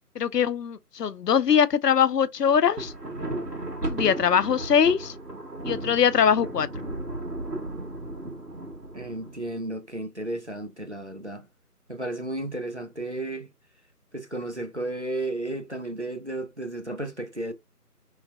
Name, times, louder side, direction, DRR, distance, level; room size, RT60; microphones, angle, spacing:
voice 1, 0.2-2.9 3.8-5.1 5.6-6.7, left 7 dB, 80° left, 0.6 m, -22 dB
Thunder, 2.5-9.7, right 1 dB, 85° right, 1.5 m, -35 dB
voice 2, 8.9-11.5 11.9-13.5 14.1-17.5, right 2 dB, 50° right, 0.5 m, -33 dB
3.2 x 3.1 x 2.3 m
figure-of-eight pair, 180°, 47 cm